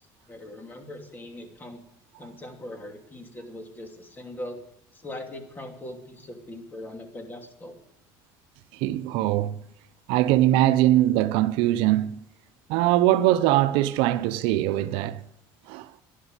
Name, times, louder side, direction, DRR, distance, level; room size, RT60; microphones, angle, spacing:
voice 1, 0.3-1.8 2.2-4.6 4.9-7.7, left 1 dB, 20° left, 2.7 m, -40 dB
voice 2, 8.7-9.6 10.1-12.2 12.7-15.2 15.7-15.9, right 14 dB, 75° right, 0.7 m, -22 dB
11.5 x 11.5 x 8.2 m
cardioid pair, 125°, 9 cm